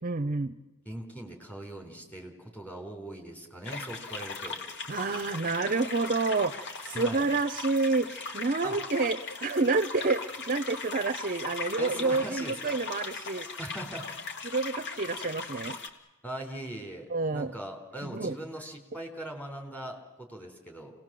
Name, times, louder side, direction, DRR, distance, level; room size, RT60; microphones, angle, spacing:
voice 1, 0.0-0.5 4.9-13.5 14.4-15.8 17.1-17.5 18.0-18.4, right 3 dB, 40° right, 11 dB, 0.7 m, -29 dB
voice 2, 0.9-4.6 6.9-7.3 8.6-8.7 11.8-12.8 13.6-14.1 16.2-17.1 17.3-20.9, right 1 dB, 5° left, 3 dB, 3.9 m, -40 dB
sound 1, 3.7-15.9, left 4 dB, 55° left, 2.6 m, -39 dB
29.0 x 19.5 x 7.6 m, 1.1 s
head